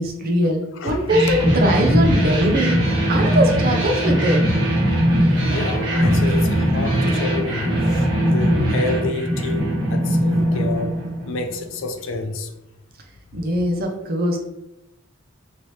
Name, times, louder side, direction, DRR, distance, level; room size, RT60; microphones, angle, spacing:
voice 1, 0.0-2.8 3.1-4.5 13.3-14.5, equal, 45° right, 0.5 m, -21 dB
voice 2, 0.8-1.1 2.0-2.6 5.5-10.9 11.3-12.5, left 2 dB, 65° left, 0.4 m, -28 dB
sound 1, 1.1-11.6, equal, 20° right, 1.0 m, -20 dB
2.9 x 2.7 x 3.1 m
head